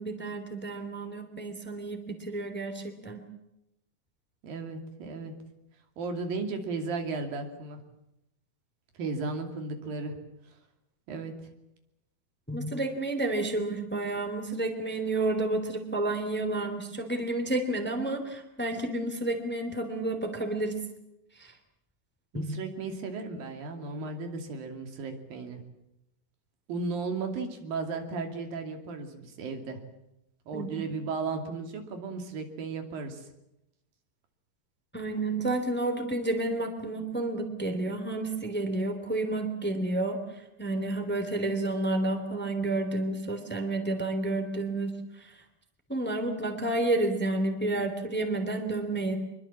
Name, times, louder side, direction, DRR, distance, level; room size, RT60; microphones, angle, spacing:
voice 1, 0.0-3.2 12.5-20.7 21.4-21.5 22.3-22.5 30.5-30.9 34.9-40.2 40.6-45.3 45.9-49.2, right 2 dB, 5° left, 6 dB, 2.5 m, -30 dB
voice 2, 4.4-5.3 6.0-7.8 9.0-10.2 11.1-11.3 22.3-25.6 26.7-29.8 30.5-33.2, right 4 dB, 85° right, 5 dB, 4.5 m, -35 dB
25.5 x 22.5 x 7.4 m, 0.86 s
omnidirectional pair, 4.0 m